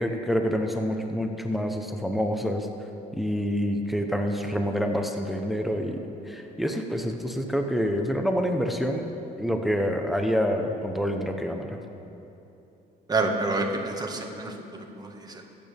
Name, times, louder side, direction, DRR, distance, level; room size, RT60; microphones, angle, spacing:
voice 1, 0.0-2.7 3.1-9.1 9.4-11.8, equal, ahead, 4 dB, 0.8 m, -27 dB
voice 2, 13.1-14.5 15.0-15.4, right 3 dB, 25° right, 2 dB, 1.6 m, -28 dB
22.5 x 8.9 x 3.5 m, 2.9 s
cardioid pair, 110°, 17 cm